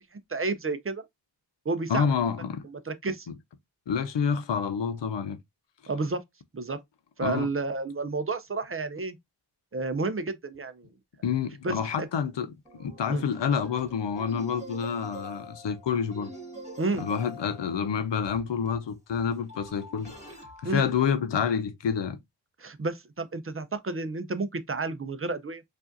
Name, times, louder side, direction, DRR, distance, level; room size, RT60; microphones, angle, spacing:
voice 1, 0.1-1.0 1.7-2.1 2.6-3.3 5.9-6.2 6.5-6.8 7.2-9.2 9.7-10.9 11.6-12.1 13.1-13.2 16.8-17.1 20.6-20.9 22.6-25.6, right 3 dB, 30° right, 0.5 m, -31 dB
voice 2, 1.9-2.6 3.9-5.4 7.2-7.5 11.2-16.3 17.0-20.1 20.7-22.2, left 7 dB, 85° left, 0.6 m, -28 dB
sound 1, 12.0-12.1 12.7-21.2, right 1 dB, 15° right, 1.9 m, -45 dB
4.7 x 2.5 x 2.6 m
wide cardioid pair, 55°, 42 cm